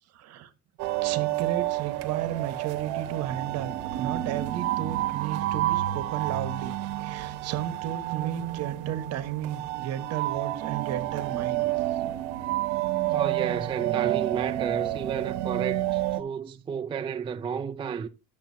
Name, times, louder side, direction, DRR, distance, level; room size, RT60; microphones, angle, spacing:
voice 1, 0.1-0.5 1.0-6.7 7.0-11.7, right 11 dB, 55° right, 1.3 m, -33 dB
sound 1, 0.8-16.2, right 15 dB, 85° right, 0.9 m, -29 dB
voice 2, 13.1-18.1, right 7 dB, 20° right, 0.4 m, -31 dB
10.5 x 7.1 x 2.8 m
cardioid pair, 135°, 30 cm